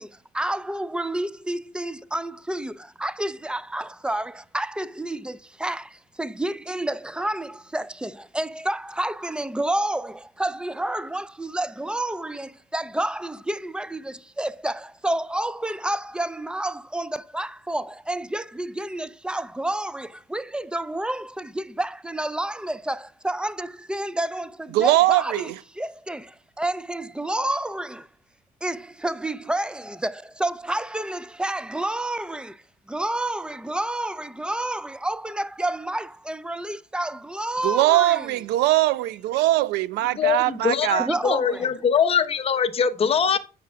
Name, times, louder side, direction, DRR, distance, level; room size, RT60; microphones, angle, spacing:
voice 1, 0.0-28.1 28.6-32.6 32.9-38.3 41.0-41.7, right 1 dB, 5° right, 0.3 m, -29 dB
voice 2, 24.7-25.5 37.6-41.1, right 16 dB, 90° right, 0.5 m, -21 dB
voice 3, 40.1-43.4, left 7 dB, 35° left, 0.9 m, -22 dB
8.6 x 6.0 x 3.4 m
cardioid pair, 110°, 17 cm